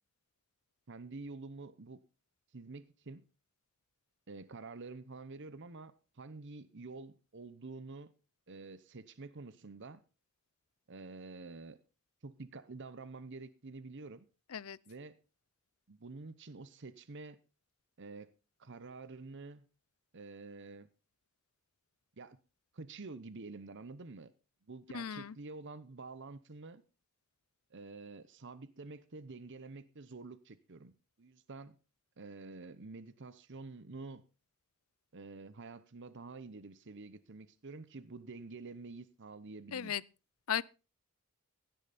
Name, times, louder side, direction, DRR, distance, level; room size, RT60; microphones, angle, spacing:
voice 1, 0.9-2.0 2.5-3.2 4.3-8.1 8.5-10.0 10.9-11.8 12.2-14.3 14.9-15.2 15.9-17.4 18.0-18.3 18.6-19.7 20.1-20.9 22.2-22.4 22.7-24.3 24.7-26.8 27.7-30.9 31.2-31.8 32.2-34.2 35.1-39.9, right 3 dB, 60° right, 0.9 m, -48 dB
voice 2, 24.9-25.3 39.7-40.0 40.5-40.6, left 8 dB, 80° left, 0.6 m, -36 dB
16.0 x 10.5 x 4.2 m
head